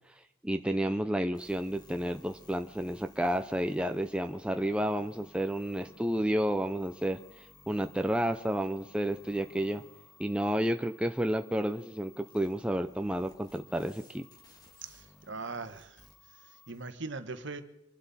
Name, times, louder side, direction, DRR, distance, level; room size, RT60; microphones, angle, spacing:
voice 1, 0.4-9.8 10.2-14.2, right 1 dB, 5° right, 0.5 m, -31 dB
sound 1, 1.3-16.9, left 2 dB, 20° left, 2.1 m, -58 dB
voice 2, 14.8-16.0 16.4-17.6, right 3 dB, 60° right, 1.3 m, -41 dB
26.0 x 12.0 x 4.2 m
head